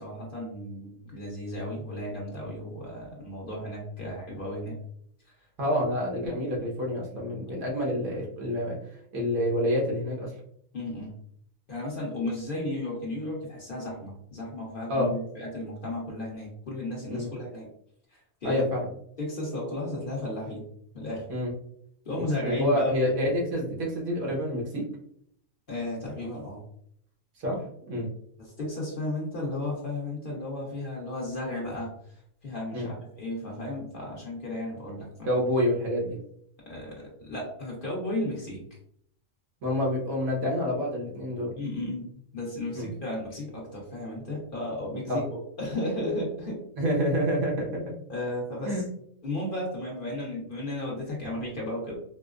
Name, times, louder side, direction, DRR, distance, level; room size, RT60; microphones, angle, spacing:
voice 1, 0.0-4.8 10.7-11.1 11.7-17.7 18.1-18.6 19.2-20.6 20.9-21.2 22.0-23.1 25.7-26.6 28.4-31.9 32.4-35.3 36.7-38.6 41.6-46.6 48.1-48.8 49.2-52.0, left 1 dB, 40° left, -4 dB, 1.1 m, -34 dB
voice 2, 5.6-8.8 9.1-10.3 14.9-15.1 17.1-17.3 18.4-18.9 21.3-21.5 22.4-24.8 27.4-27.6 27.9-28.1 32.7-32.9 35.3-36.2 39.6-41.5 42.7-42.9 45.1-45.2 46.8-47.9 48.6-48.8, equal, 85° right, -3 dB, 1.6 m, -27 dB
4.6 x 2.0 x 2.4 m, 0.68 s
omnidirectional pair, 1.4 m